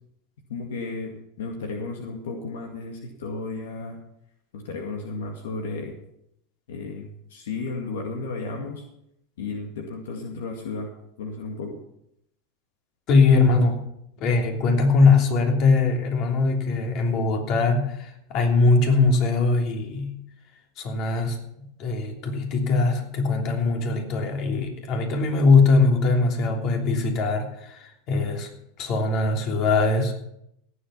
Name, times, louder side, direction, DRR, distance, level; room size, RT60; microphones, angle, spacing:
voice 1, 0.5-4.0 4.5-6.0 6.7-8.8 9.4-10.9 11.2-11.8, left 3 dB, 80° left, 3 dB, 2.1 m, -33 dB
voice 2, 13.1-13.8 14.2-20.2 20.8-30.2, left 3 dB, 50° left, 2 dB, 3.2 m, -21 dB
17.0 x 8.1 x 5.8 m, 0.77 s
hypercardioid pair, 115°, 0 cm